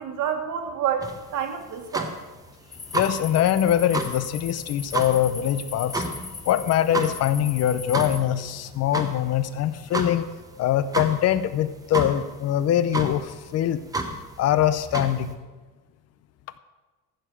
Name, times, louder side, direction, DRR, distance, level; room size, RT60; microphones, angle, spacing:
voice 1, 0.0-2.1, right 8 dB, 55° right, 5 dB, 1.9 m, -28 dB
sound 1, 1.0-15.3, right 2 dB, 10° right, 0.9 m, -33 dB
sound 2, 2.7-8.2, left 5 dB, 20° left, 1.1 m, -39 dB
voice 2, 2.9-6.1 6.5-10.2 10.6-13.8 14.4-15.4, left 11 dB, 45° left, 13 dB, 0.7 m, -23 dB
14.5 x 7.2 x 6.3 m, 1.3 s
cardioid pair, 155°, 37 cm